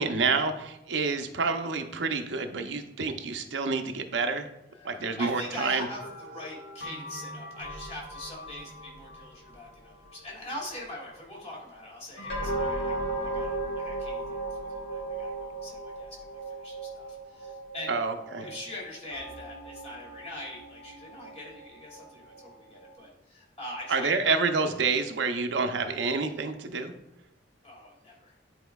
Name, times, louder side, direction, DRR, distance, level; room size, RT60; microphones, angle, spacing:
voice 1, 0.0-4.5 4.8-5.9 17.9-18.5 23.9-26.9, right 4 dB, 75° right, 6 dB, 0.6 m, -28 dB
sound 1, 4.7-10.4 12.2-22.9, right 2 dB, 90° left, 1.9 m, -38 dB
voice 2, 4.8-12.9 13.2-14.6 14.9-18.0 18.4-24.3 27.6-28.3, left 1 dB, 35° left, -3 dB, 2.2 m, -43 dB
10.0 x 4.3 x 2.3 m, 0.85 s
head